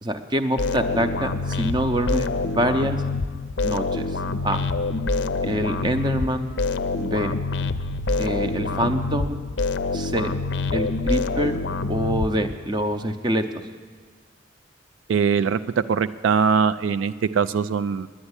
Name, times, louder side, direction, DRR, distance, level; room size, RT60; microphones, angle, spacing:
voice 1, 0.0-3.0 3.6-4.1 4.4-4.6 5.4-6.5 7.0-7.3 8.2-9.4 9.9-10.3 10.7-11.6 11.9-13.4, right 1 dB, 25° right, 9 dB, 0.6 m, -25 dB
sound 1, 0.6-12.8, left 3 dB, 60° left, 0.5 m, -26 dB
voice 2, 15.1-18.1, right 6 dB, 75° right, 14 dB, 0.3 m, -22 dB
9.8 x 9.7 x 9.7 m, 1.5 s
head